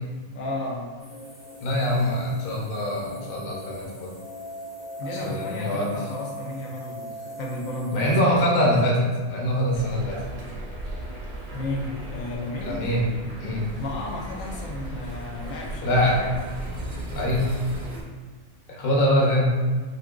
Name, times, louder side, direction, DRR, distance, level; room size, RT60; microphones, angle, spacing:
voice 1, 0.3-0.9 5.0-8.2 11.5-12.8 13.6-16.4, left 2 dB, 80° left, -2 dB, 1.0 m, -33 dB
sound 1, 1.0-8.2, left 1 dB, ahead, 0.6 m, -40 dB
voice 2, 1.6-4.1 5.1-5.9 7.9-10.2 12.6-13.0 13.4-13.7 15.8-16.2 17.1-17.5 18.7-19.5, equal, 50° left, -3 dB, 0.8 m, -23 dB
sound 2, 9.7-18.0, right 1 dB, 60° right, 0.4 m, -36 dB
2.6 x 2.4 x 3.6 m, 1.5 s
omnidirectional pair, 1.4 m